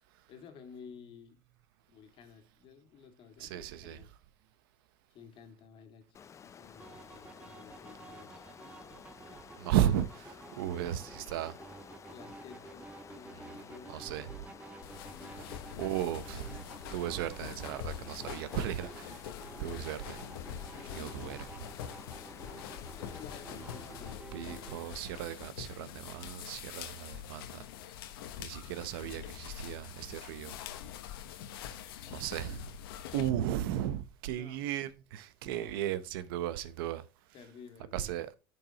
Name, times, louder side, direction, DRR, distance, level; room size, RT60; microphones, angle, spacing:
voice 1, 0.3-1.4 1.9-4.1 5.1-6.1 6.4-8.5 9.3-9.4 10.6-10.7 12.1-14.1 15.1-15.6 20.7-21.4 23.0-24.7 34.3-34.6 35.4-35.8 37.3-38.1, left 6 dB, 45° left, 2.2 m, -53 dB
voice 2, 3.4-4.0 9.6-11.6 13.3-13.6 13.9-14.4 15.8-16.6 16.9-19.2 19.6-20.2 20.9-21.5 24.3-27.6 28.4-30.6 32.1-32.7 33.1-37.0 37.9-38.3, right 11 dB, 80° right, 0.9 m, -35 dB
Water, 6.1-24.1, left 7 dB, 25° left, 0.5 m, -53 dB
sound 1, 6.8-24.8, right 3 dB, 10° right, 0.9 m, -51 dB
sound 2, 14.8-33.3, left 10 dB, 90° left, 1.1 m, -45 dB
10.5 x 6.8 x 3.0 m
supercardioid pair, 115°, 12 cm